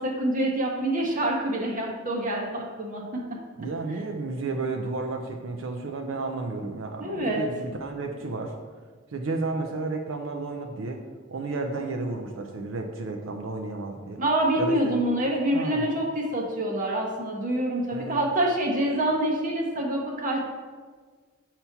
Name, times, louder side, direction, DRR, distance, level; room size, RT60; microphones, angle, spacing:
voice 1, 0.0-3.4 7.0-7.5 14.2-20.4, right 1 dB, 40° right, -2 dB, 0.7 m, -26 dB
voice 2, 3.6-8.6 9.1-11.0 11.3-14.2 14.6-14.9 15.5-15.8 17.9-18.3, right 3 dB, 70° right, 3 dB, 0.5 m, -32 dB
6.7 x 2.9 x 5.7 m, 1.5 s
head